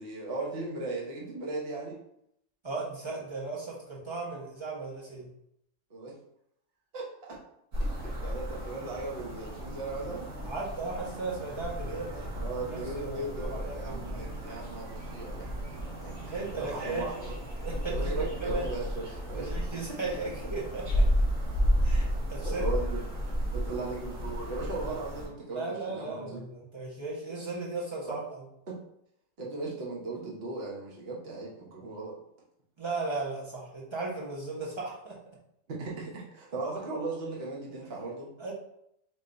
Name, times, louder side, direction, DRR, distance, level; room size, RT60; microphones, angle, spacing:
voice 1, 0.0-2.0 5.9-6.1 6.9-7.4 7.8-7.9 8.2-10.3 11.8-12.0 12.3-15.5 16.0-17.3 17.9-19.5 22.4-23.0 23.5-26.4 28.0-28.2 28.7-28.8 29.4-32.2 35.7-38.3, right 3 dB, 50° right, -4 dB, 1.3 m, -37 dB
voice 2, 2.6-5.3 10.4-12.3 12.6-14.2 16.3-17.2 17.6-18.6 19.3-21.1 21.8-22.6 25.5-28.4 32.8-35.2 38.4-38.5, right 3 dB, 25° right, -5 dB, 1.1 m, -36 dB
sound 1, 7.7-25.3, equal, 75° right, 1.6 m, -33 dB
3.9 x 3.0 x 3.9 m, 0.76 s
omnidirectional pair, 1.4 m